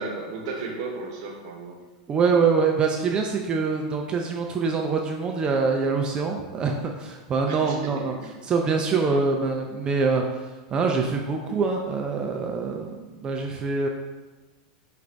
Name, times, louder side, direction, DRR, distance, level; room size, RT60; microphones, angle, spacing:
voice 1, 0.0-1.8 7.5-8.2 9.1-9.2, right 3 dB, 60° right, 1 dB, 0.9 m, -35 dB
voice 2, 2.1-8.1 8.4-13.9, right 4 dB, 25° right, 2 dB, 0.4 m, -25 dB
5.0 x 2.4 x 3.3 m, 1.2 s
supercardioid pair, 125°, 3 cm